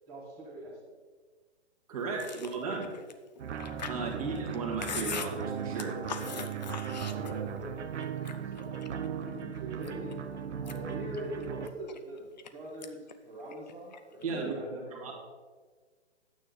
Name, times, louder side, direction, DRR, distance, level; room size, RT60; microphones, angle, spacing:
voice 1, 0.1-0.8 7.0-8.7 9.2-10.2 10.6-12.2 12.5-15.1, right 1 dB, 5° right, -10 dB, 1.0 m, -43 dB
voice 2, 1.9-2.9 3.9-6.0 14.2-14.6 15.0-15.1, right 4 dB, 30° right, 0 dB, 1.8 m, -35 dB
Chewing mastication, 2.1-7.6 8.0-9.1 9.5-10.1 10.5-12.5 12.8-13.1 13.4-14.2, left 6 dB, 40° left, 0.6 m, -41 dB
sound 1, 3.4-11.7, right 7 dB, 85° right, 1.0 m, -37 dB
9.9 x 9.1 x 3.9 m, 1.5 s
hypercardioid pair, 175°, 34 cm